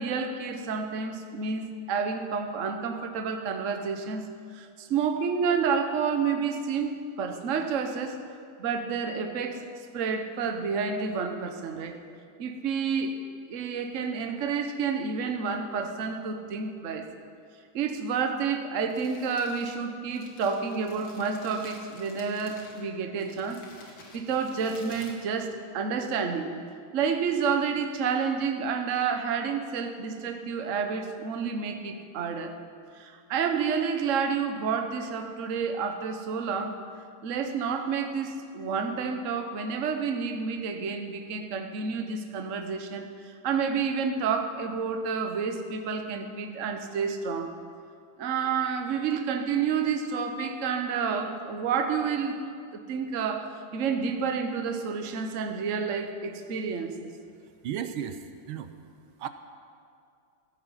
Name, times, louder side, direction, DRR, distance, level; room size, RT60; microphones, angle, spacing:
voice 1, 0.0-4.2 4.5-8.2 8.6-9.7 9.9-12.0 12.4-13.2 13.5-17.1 17.7-23.6 24.1-26.6 26.9-32.5 32.9-36.8 37.2-47.5 48.2-52.4 52.7-57.1, right 6 dB, 45° right, 5 dB, 1.1 m, -29 dB
Crumpling crinkling, 18.7-26.0, left 3 dB, 70° left, 2.7 m, -52 dB
voice 2, 57.6-58.7 59.2-59.3, right 9 dB, 80° right, 9 dB, 1.6 m, -34 dB
15.5 x 14.0 x 5.7 m, 2.4 s
omnidirectional pair, 2.3 m